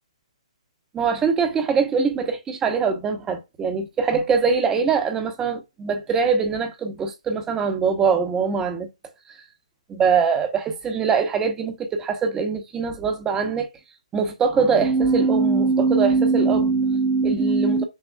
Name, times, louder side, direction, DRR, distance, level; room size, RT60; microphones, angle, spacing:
voice 1, 0.9-8.9 9.9-13.7 14.1-17.8, right 5 dB, 15° right, 0.9 m, -22 dB
6.3 x 2.2 x 2.3 m
hypercardioid pair, 145°, 4 cm